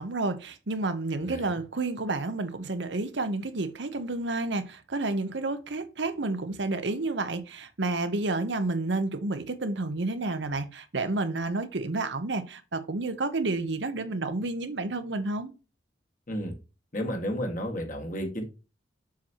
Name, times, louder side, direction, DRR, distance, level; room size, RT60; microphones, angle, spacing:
voice 1, 0.0-15.5, right 2 dB, 70° right, 0.9 m, -30 dB
voice 2, 1.2-1.5 16.3-16.5 16.9-18.4, equal, 45° left, 1.8 m, -32 dB
7.3 x 5.9 x 2.9 m
head